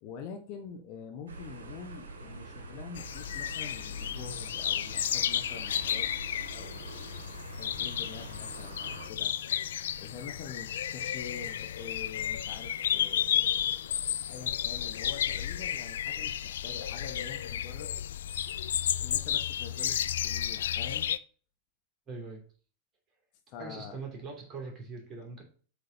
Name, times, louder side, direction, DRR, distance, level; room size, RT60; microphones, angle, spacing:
voice 1, 0.0-9.3 10.0-13.9 14.3-17.9 19.0-21.1 23.5-24.0, left 6 dB, 45° left, 4 dB, 1.2 m, -46 dB
sound 1, 1.3-9.1, right 3 dB, 65° right, 1.3 m, -45 dB
sound 2, 3.0-21.2, left 10 dB, 60° left, 0.3 m, -32 dB
voice 2, 22.1-22.4 23.6-25.4, right 4 dB, 25° right, 1 dB, 2.9 m, -42 dB
7.8 x 3.6 x 4.3 m, 0.41 s
figure-of-eight pair, 90°, 0 cm